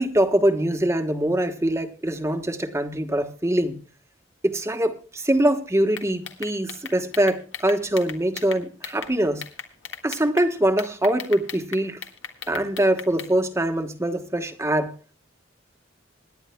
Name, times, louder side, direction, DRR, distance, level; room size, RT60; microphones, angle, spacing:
voice 1, 0.0-3.8 4.4-9.4 10.0-12.0 12.5-14.9, right 1 dB, 15° right, 1.2 m, -23 dB
sound 1, 5.9-9.1 9.4-10.5 10.8-13.3, left 7 dB, 80° left, 1.6 m, -37 dB
26.5 x 10.5 x 2.2 m
head